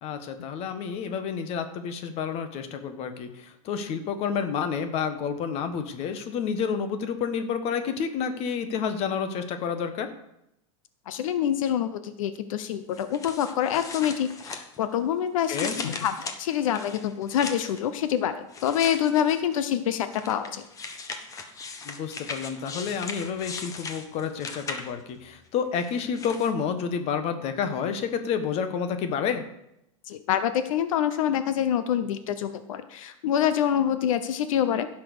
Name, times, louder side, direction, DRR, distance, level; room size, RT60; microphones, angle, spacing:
voice 1, 0.0-10.1 15.5-15.8 21.8-29.4, left 6 dB, 40° left, 9 dB, 1.3 m, -29 dB
voice 2, 11.1-20.6 30.1-34.9, left 9 dB, 80° left, 11 dB, 0.9 m, -26 dB
sound 1, 12.9-15.0 15.4-17.8 18.5-19.5 20.1-25.1 25.8-26.5, left 4 dB, 20° left, 1.1 m, -38 dB
15.5 x 6.0 x 6.7 m, 0.82 s
supercardioid pair, 150°, 17 cm